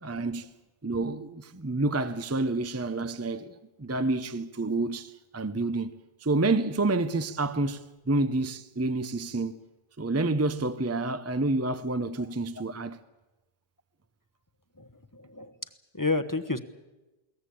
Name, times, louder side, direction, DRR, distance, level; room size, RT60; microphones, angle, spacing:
voice 1, 0.0-0.5 0.8-9.6 10.0-13.0, right 2 dB, 15° right, 0.7 m, -29 dB
voice 2, 14.8-15.6 15.9-16.6, left 3 dB, 20° left, 1.1 m, -31 dB
22.0 x 18.5 x 8.5 m
omnidirectional pair, 1.0 m